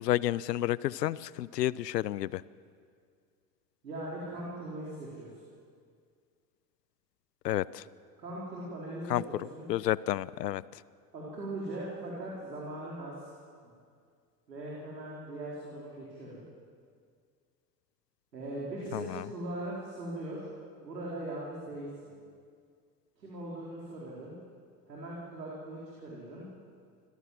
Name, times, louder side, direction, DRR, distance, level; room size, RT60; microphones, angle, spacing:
voice 1, 0.0-2.4 7.4-7.8 9.1-9.2 9.7-10.6 18.9-19.2, left 14 dB, 80° left, 21 dB, 0.7 m, -30 dB
voice 2, 3.8-5.4 8.2-9.7 11.1-13.3 13.6-13.7 14.5-16.4 18.3-20.5 20.8-22.1 23.2-24.3 24.9-26.4, right 1 dB, 85° right, -5 dB, 4.3 m, -40 dB
25.5 x 16.0 x 7.7 m, 2.2 s
figure-of-eight pair, 70°, 48 cm